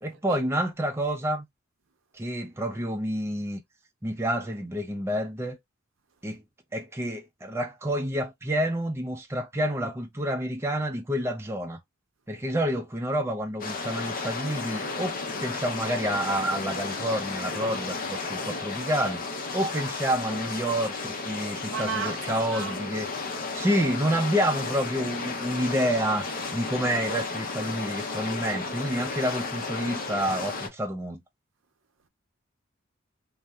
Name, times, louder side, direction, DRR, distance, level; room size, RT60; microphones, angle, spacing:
voice 1, 0.0-1.5 2.1-3.6 4.0-5.6 6.2-6.4 6.7-11.8 12.3-31.2, equal, 15° right, 0.4 m, -29 dB
sound 1, 13.6-30.7, left 4 dB, 45° left, 0.6 m, -33 dB
voice 2, 21.7-22.7 23.7-23.9, right 6 dB, 70° right, 0.6 m, -34 dB
2.6 x 2.0 x 3.4 m
head